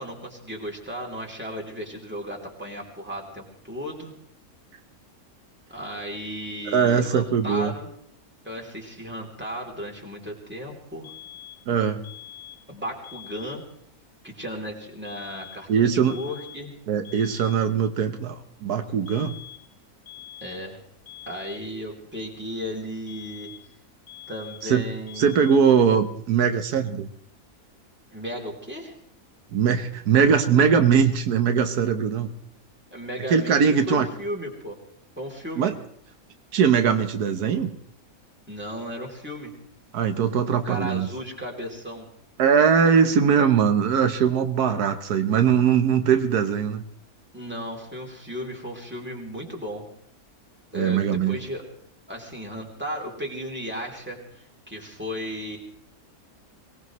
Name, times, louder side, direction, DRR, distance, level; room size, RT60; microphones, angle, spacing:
voice 1, 0.0-4.1 5.7-7.9 8.4-11.1 12.7-13.6 14.2-16.7 20.4-20.8 21.3-23.5 24.3-25.4 28.1-29.0 32.9-33.6 33.9-34.8 35.2-35.7 38.5-39.5 40.4-42.1 47.3-49.9 50.7-51.6 52.1-55.6, equal, 5° right, -1 dB, 3.2 m, -35 dB
voice 2, 6.7-7.7 11.7-12.0 15.7-16.2 16.9-18.3 18.6-19.4 24.6-24.9 25.2-27.1 29.5-32.3 33.3-34.1 35.6-35.7 36.5-37.7 39.9-41.1 42.4-46.8 50.7-51.4, right 7 dB, 85° right, 7 dB, 1.5 m, -21 dB
sound 1, 11.0-11.7 12.0-12.7 13.0-13.7 15.0-15.7 16.0-16.7 17.0-17.7 19.1-19.7 20.1-20.7 21.1-21.7 23.1-23.7 24.1-24.7 25.1-25.7, left 12 dB, 90° left, 1.7 m, -44 dB
23.5 x 19.0 x 3.1 m, 0.68 s
omnidirectional pair, 1.6 m